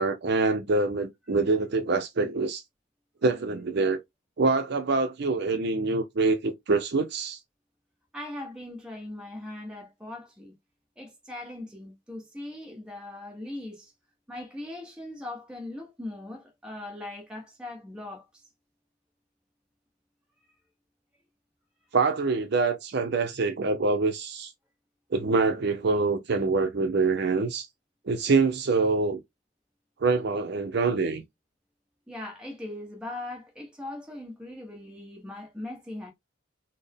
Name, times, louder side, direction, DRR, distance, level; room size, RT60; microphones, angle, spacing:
voice 1, 0.0-2.6 3.2-4.0 4.4-7.4 21.9-24.5 25.1-27.7 28.1-29.2 30.0-31.2, right 3 dB, 55° right, 0.5 m, -25 dB
voice 2, 8.1-10.5 11.0-13.9 14.3-18.4 32.1-36.1, left 1 dB, 5° right, 0.9 m, -40 dB
4.2 x 2.0 x 3.4 m
head